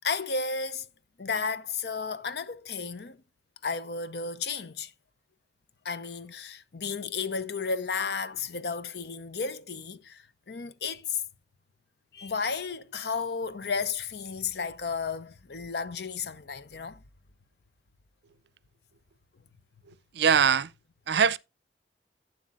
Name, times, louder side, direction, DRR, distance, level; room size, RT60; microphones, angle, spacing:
voice 1, 0.0-0.9 1.2-3.2 3.6-4.9 5.8-11.2 12.1-17.0, left 5 dB, 65° left, 0.7 m, -33 dB
voice 2, 19.9-20.7 21.1-21.4, right 7 dB, 75° right, 0.5 m, -23 dB
11.5 x 8.9 x 2.5 m
head